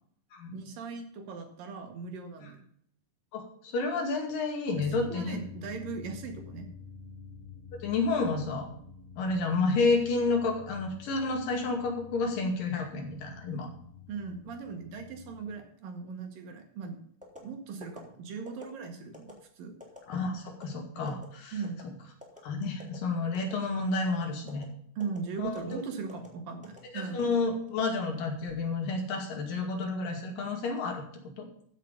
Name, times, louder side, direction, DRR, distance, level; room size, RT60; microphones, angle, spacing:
voice 1, 0.5-2.6 4.8-6.7 14.1-17.0 17.4-19.7 21.5-21.8 25.0-27.3, right 5 dB, 85° right, 4 dB, 3.6 m, -39 dB
voice 2, 3.3-5.4 7.7-8.7 9.2-13.7 20.1-21.6 22.4-24.7 25.4-25.8 26.9-31.0 31.4-31.5, left 3 dB, 75° left, 2 dB, 4.0 m, -30 dB
sound 1, 4.7-15.5, left 6 dB, 55° left, 5.5 m, -49 dB
sound 2, 17.2-17.4 17.8-18.0 18.5-18.7 19.1-19.3 19.8-20.0 20.5-20.6 21.1-21.3 21.6-21.9 22.2-22.4 22.8-23.0 23.3-23.6 23.9-24.1 24.5-24.6 25.0-25.2 25.5-25.7 26.1-26.3 26.6-26.8 27.2-27.8 28.3-28.6, left 2 dB, ahead, 3.0 m, -47 dB
14.5 x 6.6 x 5.3 m, 0.65 s
omnidirectional pair, 3.9 m